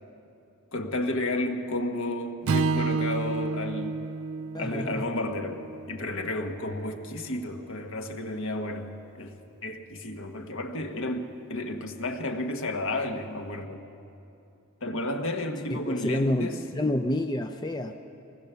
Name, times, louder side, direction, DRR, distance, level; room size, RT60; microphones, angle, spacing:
voice 1, 0.7-4.0 4.6-9.4 9.6-13.9 14.8-16.6, left 1 dB, 65° left, 5 dB, 1.5 m, -32 dB
Strum, 2.5-6.8, right 4 dB, 80° right, 0.4 m, -31 dB
voice 2, 4.5-5.1 15.9-17.9, left 1 dB, 20° left, 6 dB, 0.5 m, -28 dB
24.0 x 19.5 x 7.0 m, 2.7 s
head